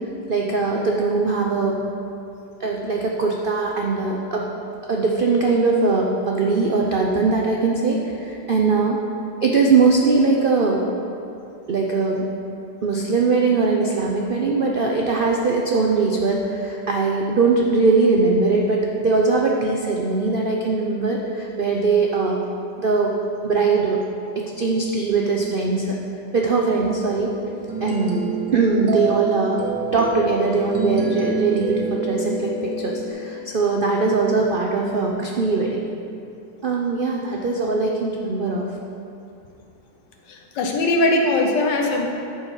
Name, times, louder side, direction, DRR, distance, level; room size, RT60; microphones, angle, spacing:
voice 1, 0.3-1.8 2.6-4.5 4.9-9.0 9.4-10.9 11.7-12.3 12.8-22.4 22.8-23.1 23.4-24.0 24.4-26.0 26.3-27.3 27.8-28.2 28.5-35.8 36.6-38.7, right 4 dB, 85° right, -1 dB, 0.4 m, -21 dB
sound 1, 26.7-33.1, right 3 dB, 70° right, 1.7 m, -28 dB
voice 2, 40.3-42.1, left 2 dB, 70° left, 1 dB, 1.6 m, -20 dB
13.0 x 4.8 x 5.6 m, 2.6 s
omnidirectional pair, 2.0 m